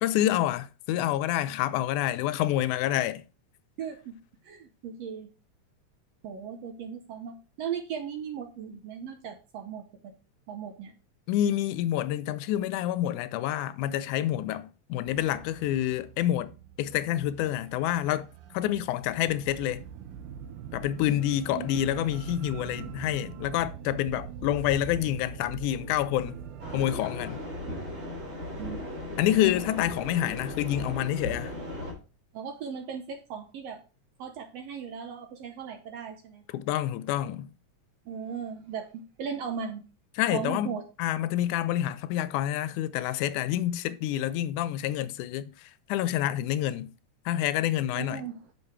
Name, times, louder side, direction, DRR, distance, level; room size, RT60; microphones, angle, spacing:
voice 1, 0.0-3.2 11.3-19.8 20.7-26.4 26.7-27.4 29.2-31.5 36.5-37.5 40.2-40.7 41.0-46.9 47.3-48.2, left 12 dB, 85° left, 2.0 m, -28 dB
voice 2, 3.8-4.2 4.4-5.3 6.2-10.1 10.5-10.9 21.5-21.8 28.6-28.9 32.3-33.8 34.2-36.4 38.1-39.8 40.3-40.8 47.9-48.4, right 7 dB, 70° right, 1.6 m, -37 dB
sound 1, 15.1-26.8, right 8 dB, 90° right, 2.3 m, -43 dB
sound 2, 26.6-31.9, left 1 dB, 25° right, 2.4 m, -37 dB
6.6 x 5.4 x 4.6 m
omnidirectional pair, 3.5 m